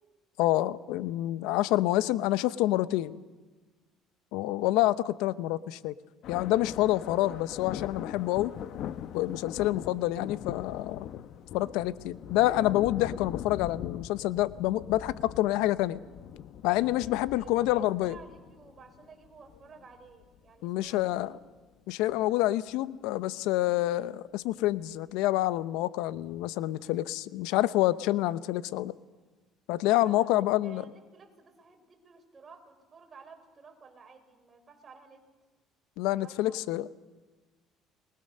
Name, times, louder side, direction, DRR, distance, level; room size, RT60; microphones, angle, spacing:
voice 1, 0.4-3.2 4.3-5.9 6.3-8.5 9.1-11.1 11.5-16.0 16.6-18.2 20.6-21.4 21.9-28.9 29.7-30.8 36.0-36.9, left 15 dB, 80° left, 15 dB, 0.8 m, -27 dB
sound 1, 6.2-20.4 20.9-21.2 22.1-22.3 23.1-23.2 24.7-24.8, left 10 dB, 65° left, 1.1 m, -41 dB
voice 2, 16.8-21.4 29.8-35.2 36.2-36.6, right 4 dB, 35° right, 4 dB, 5.2 m, -54 dB
29.0 x 20.5 x 6.7 m, 1.3 s
supercardioid pair, 90°, 0 cm